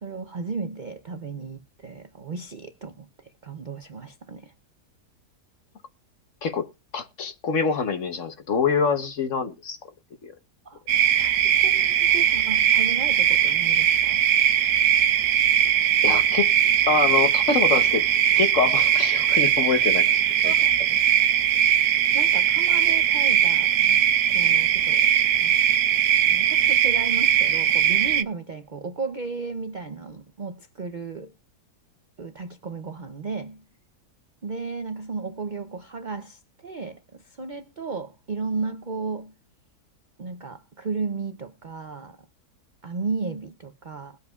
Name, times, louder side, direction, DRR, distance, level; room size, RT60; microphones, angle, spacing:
voice 1, 0.0-4.5 10.6-10.8 11.2-14.3 20.4-21.3 22.1-24.1 24.3-25.0 25.4-25.6 26.3-31.3 32.2-33.6 34.4-39.3 40.2-42.3 42.8-44.2, right 4 dB, 50° right, 0.5 m, -34 dB
voice 2, 6.9-9.8 10.2-10.3 16.0-16.5 16.9-18.0 18.4-20.1 20.4-20.5, left 5 dB, 50° left, 1.2 m, -25 dB
sound 1, 10.9-28.2, right 10 dB, 70° right, 1.2 m, -20 dB
21.0 x 7.9 x 2.4 m
omnidirectional pair, 1.8 m